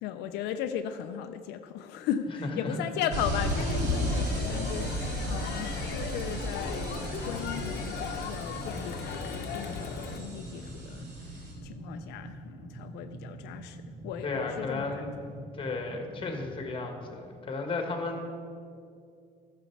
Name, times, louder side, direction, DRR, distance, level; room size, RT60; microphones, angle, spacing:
voice 1, 0.0-15.1, left 9 dB, 90° left, 8 dB, 0.5 m, -37 dB
voice 2, 2.4-2.8 14.2-15.1 15.6-18.2, left 3 dB, 30° left, 4 dB, 1.5 m, -34 dB
sound 1, 3.1-11.5, equal, 85° right, 2.2 m, -34 dB
sound 2, 3.2-16.6, right 1 dB, 45° right, 1.7 m, -45 dB
Crowd, 3.4-10.2, left 6 dB, 75° left, 0.8 m, -38 dB
12.0 x 6.8 x 4.5 m, 2.4 s
cardioid pair, 110°, 17 cm